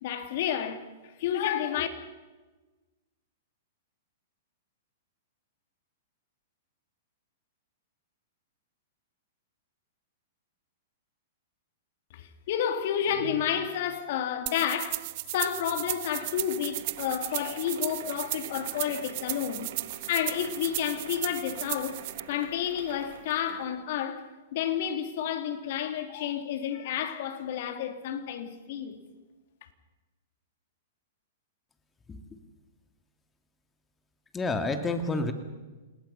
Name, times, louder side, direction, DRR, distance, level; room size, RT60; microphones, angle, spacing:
voice 1, 0.0-0.8 1.2-1.9 12.1-15.0 15.3-19.7 20.1-22.0 22.3-29.0, left 9 dB, 60° left, 2.9 m, -30 dB
sound 1, 14.5-22.2, right 24 dB, 50° right, 0.6 m, -35 dB
sound 2, 14.9-23.7, right 7 dB, 65° right, 4.7 m, -47 dB
voice 2, 32.1-32.4 34.3-35.3, left 3 dB, 15° left, 2.3 m, -29 dB
28.0 x 19.5 x 5.6 m
hypercardioid pair, 125°, 0 cm